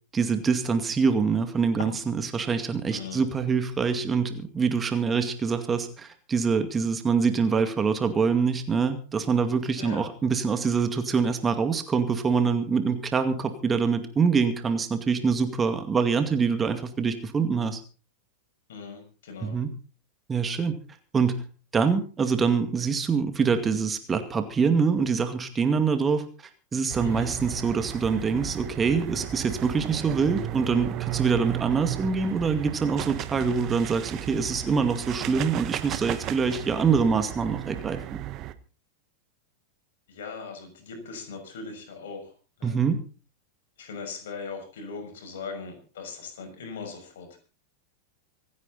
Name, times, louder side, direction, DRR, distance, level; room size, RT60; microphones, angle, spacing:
voice 1, 0.1-17.8 19.4-19.7 20.3-20.8 21.1-21.4 21.7-26.2 26.7-38.0 42.6-43.0, right 5 dB, 20° right, 8 dB, 2.2 m, -25 dB
voice 2, 2.9-3.2 9.8-10.0 18.7-19.6 27.0-27.3 40.1-42.3 42.6-43.0 43.8-47.4, left 4 dB, 65° left, 5 dB, 6.3 m, -39 dB
sound 1, 26.9-38.5, right 14 dB, 40° right, 1.2 m, -35 dB
26.0 x 9.8 x 4.2 m, 0.36 s
figure-of-eight pair, 90°, 0 cm